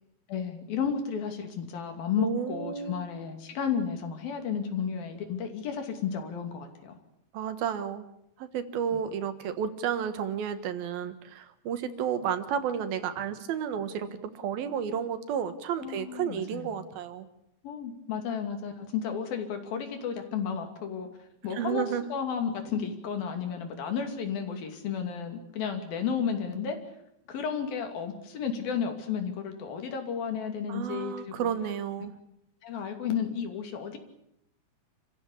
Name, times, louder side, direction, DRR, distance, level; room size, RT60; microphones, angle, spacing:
voice 1, 0.3-7.0 8.9-9.0 15.8-16.8 17.6-21.1 21.4-21.8 22.1-26.8 27.3-31.5 32.6-34.0, left 7 dB, 80° left, 5 dB, 4.4 m, -32 dB
voice 2, 2.2-3.1 7.3-8.1 8.4-17.3 21.5-22.0 30.7-32.1, right 8 dB, 80° right, 10 dB, 3.3 m, -32 dB
28.5 x 15.0 x 8.5 m, 0.81 s
omnidirectional pair, 4.1 m